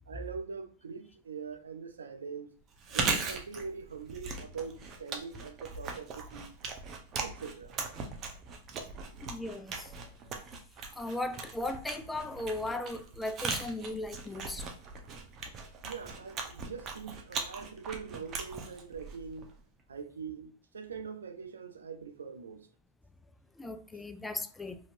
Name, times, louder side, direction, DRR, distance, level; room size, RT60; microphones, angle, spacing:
voice 1, 0.1-2.5 2.9-6.5 7.1-7.8 15.8-19.5 19.9-22.7, right 5 dB, 85° right, 0.3 m, -43 dB
Chewing mastication, 2.7-19.6, right 4 dB, 35° right, 0.6 m, -39 dB
voice 2, 9.2-10.0 11.0-14.7 23.6-24.8, left 2 dB, 10° left, 0.3 m, -37 dB
2.8 x 2.7 x 2.5 m
hypercardioid pair, 105°, 0 cm